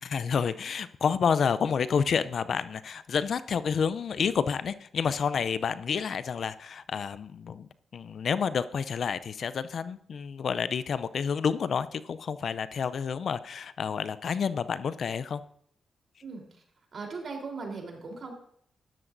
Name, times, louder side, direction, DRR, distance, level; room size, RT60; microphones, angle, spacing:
voice 1, 0.0-15.4, left 6 dB, 65° left, 15 dB, 0.5 m, -29 dB
voice 2, 16.9-18.3, right 4 dB, 60° right, 0 dB, 3.6 m, -38 dB
14.0 x 12.0 x 2.6 m, 0.64 s
supercardioid pair, 50°, 0 cm